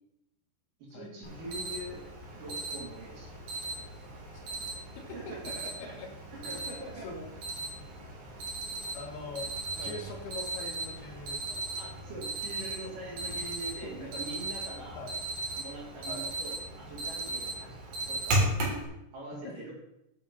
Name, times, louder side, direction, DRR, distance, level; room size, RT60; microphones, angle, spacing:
voice 1, 0.8-2.0 2.3-3.3 5.0-6.0 6.3-7.1 9.8-9.9 11.8-15.0 15.6-17.8 18.1-18.6 19.1-19.7, right 1 dB, 50° right, -4 dB, 4.4 m, -43 dB
Alarm, 1.2-18.8, right 2 dB, 70° right, 5.6 m, -36 dB
voice 2, 7.7-8.1 8.9-9.5 9.8-11.6 13.8-14.3 15.0-15.2 16.1-16.3 19.4-19.7, left 3 dB, 70° left, 2 dB, 3.2 m, -43 dB
11.5 x 7.2 x 5.5 m, 0.85 s
omnidirectional pair, 5.1 m